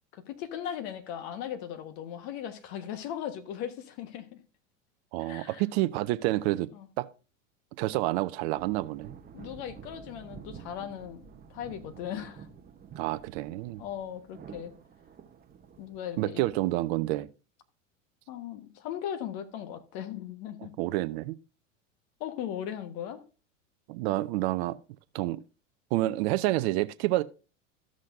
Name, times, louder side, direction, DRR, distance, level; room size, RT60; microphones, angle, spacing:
voice 1, 0.1-4.4 5.2-5.6 6.7-6.9 9.3-12.5 13.8-14.7 15.8-16.4 18.3-20.7 22.2-23.2, left 10 dB, 55° left, 1.4 m, -38 dB
voice 2, 5.1-6.7 7.0-7.1 7.8-9.1 13.0-13.8 16.2-17.3 20.8-21.4 23.9-24.8 25.1-25.4 25.9-27.2, right 17 dB, 50° right, 0.6 m, -28 dB
sound 1, 8.6-16.7, right 7 dB, 25° right, 0.8 m, -50 dB
13.0 x 6.3 x 2.6 m
hypercardioid pair, 90°, 39 cm